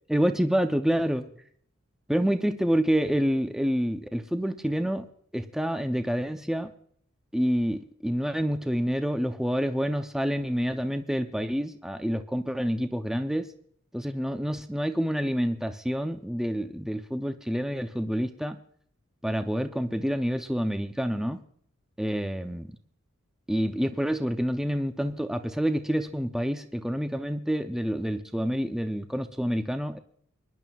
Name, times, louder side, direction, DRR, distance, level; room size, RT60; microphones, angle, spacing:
voice 1, 0.1-1.3 2.1-5.1 5.3-6.7 7.3-13.5 13.9-18.6 19.2-21.4 22.0-22.8 23.5-30.0, equal, ahead, 7 dB, 0.5 m, -28 dB
26.0 x 10.5 x 2.3 m, 0.62 s
head